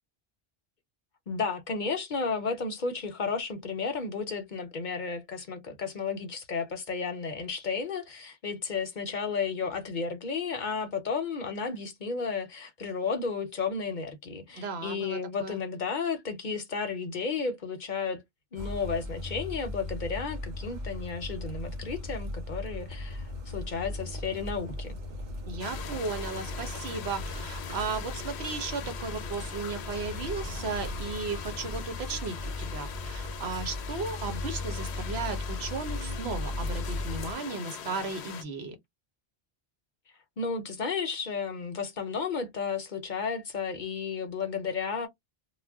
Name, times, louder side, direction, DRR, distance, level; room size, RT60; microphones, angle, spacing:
voice 1, 1.3-18.2 18.5-24.9 40.4-45.1, left 5 dB, 55° left, 0.7 m, -33 dB
voice 2, 14.6-15.6 25.5-38.8, right 4 dB, 75° right, 1.1 m, -35 dB
sound 1, 18.6-37.3, left 2 dB, 50° right, 0.8 m, -37 dB
sound 2, 25.6-38.4, left 8 dB, 80° left, 0.8 m, -42 dB
2.4 x 2.1 x 3.4 m
omnidirectional pair, 1.1 m